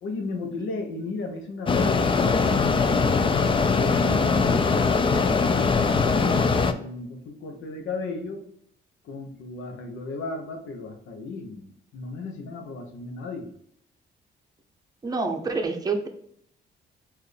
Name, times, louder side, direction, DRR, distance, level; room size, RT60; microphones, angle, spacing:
voice 1, 0.0-2.6 2.9-4.5 5.1-8.5 9.0-13.5, left 3 dB, 75° left, 4 dB, 0.9 m, -35 dB
Mechanisms, 1.7-6.7, left 4 dB, 25° left, 0.4 m, -21 dB
voice 2, 15.0-16.1, right 3 dB, 20° right, 4 dB, 0.7 m, -27 dB
4.6 x 2.6 x 3.3 m, 0.70 s
cardioid pair, 90°, 20 cm